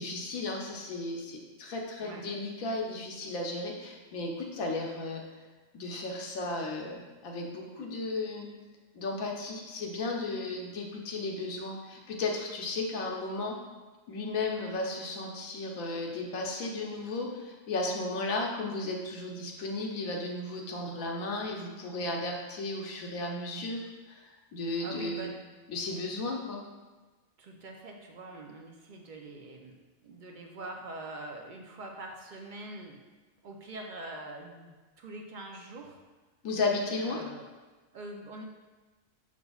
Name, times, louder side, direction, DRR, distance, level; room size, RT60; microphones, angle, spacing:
voice 1, 0.0-5.2 5.7-8.5 8.9-13.5 14.1-23.8 24.1-24.2 24.5-25.3 25.7-26.6 36.4-37.2, left 2 dB, 75° left, 0 dB, 1.3 m, -34 dB
voice 2, 24.8-25.3 27.4-33.0 33.4-36.0 37.0-37.5 37.9-38.4, right 2 dB, 60° right, 2 dB, 0.5 m, -44 dB
6.6 x 6.1 x 2.3 m, 1.3 s
omnidirectional pair, 1.5 m